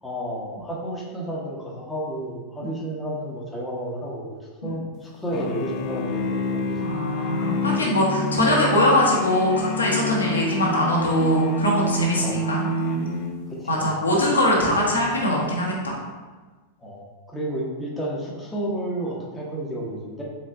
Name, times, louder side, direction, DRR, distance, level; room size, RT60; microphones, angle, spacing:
voice 1, 0.0-6.9 12.2-12.4 13.5-13.9 14.5-15.1 16.8-20.2, right 1 dB, 10° left, -4 dB, 0.9 m, -31 dB
sound 1, 5.3-13.6, left 1 dB, 40° left, 0.4 m, -27 dB
voice 2, 6.8-12.7 13.7-16.0, left 1 dB, 75° left, -3 dB, 0.9 m, -22 dB
4.3 x 3.7 x 2.5 m, 1.3 s
figure-of-eight pair, 90°, 0 cm